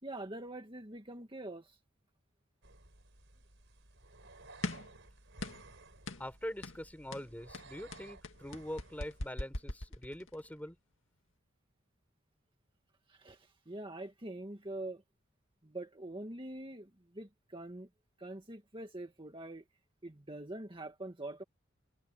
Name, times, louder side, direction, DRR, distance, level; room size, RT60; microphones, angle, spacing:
voice 1, 0.0-1.8 13.1-15.0 15.6-17.9 18.2-19.7 20.0-21.4, right 1 dB, 25° right, 1.9 m, -44 dB
sound 1, 2.6-9.3, right 2 dB, 60° right, 5.5 m, -56 dB
sound 2, 4.6-5.0 5.4-5.7 6.1-6.3 6.6-6.8 7.1-10.4, left 2 dB, 70° left, 2.2 m, -40 dB
voice 2, 6.2-10.8, equal, 10° left, 3.9 m, -43 dB
head